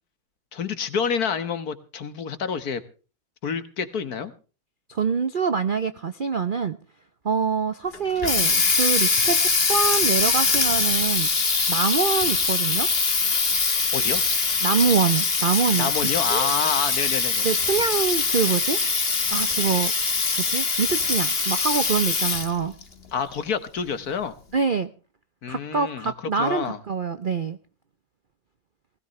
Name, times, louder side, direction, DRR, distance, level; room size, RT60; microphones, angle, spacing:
voice 1, 0.5-2.8 3.4-4.3 13.9-14.2 15.8-17.5 23.1-24.4 25.4-26.8, left 6 dB, 55° left, 12 dB, 1.7 m, -28 dB
voice 2, 4.9-6.8 7.2-11.3 11.7-12.9 14.6-15.9 16.3-16.5 17.4-18.8 19.3-19.9 20.3-22.7 24.5-24.9 25.5-27.6, right 5 dB, 70° right, 11 dB, 0.4 m, -25 dB
Water tap faucet, 7.9-22.6, left 4 dB, 30° left, 1.7 m, -23 dB
19.5 x 16.5 x 3.2 m, 0.35 s
omnidirectional pair, 2.1 m